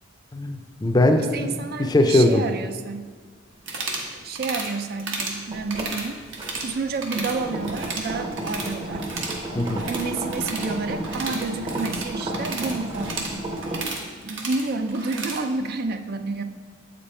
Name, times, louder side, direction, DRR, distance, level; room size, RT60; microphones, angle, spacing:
voice 1, 0.3-2.4 9.5-9.9, left 1 dB, 20° left, 6 dB, 0.5 m, -20 dB
voice 2, 1.2-3.1 4.1-6.3 6.5-9.0 9.9-13.3 14.2-16.4, right 3 dB, 55° right, 8 dB, 0.4 m, -30 dB
sound 1, 3.6-4.1 4.4-4.7 5.0-5.4 5.7-6.7 6.9-7.4 7.6-8.7 9.0-15.4, right 3 dB, 75° right, 1.2 m, -33 dB
sound 2, 5.5-13.9, right 1 dB, 30° right, 0.8 m, -32 dB
7.8 x 5.2 x 4.3 m, 1.5 s
head